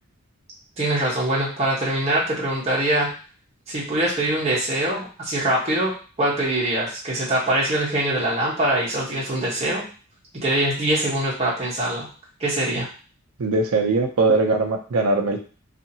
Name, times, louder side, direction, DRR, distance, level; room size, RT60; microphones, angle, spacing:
voice 1, 0.8-3.1 3.7-5.9 6.2-9.8 10.3-12.1 12.4-12.9, right 1 dB, 30° right, -6 dB, 0.9 m, -23 dB
voice 2, 13.4-15.4, right 3 dB, 80° right, 5 dB, 0.5 m, -21 dB
2.7 x 2.4 x 2.7 m, 0.37 s
head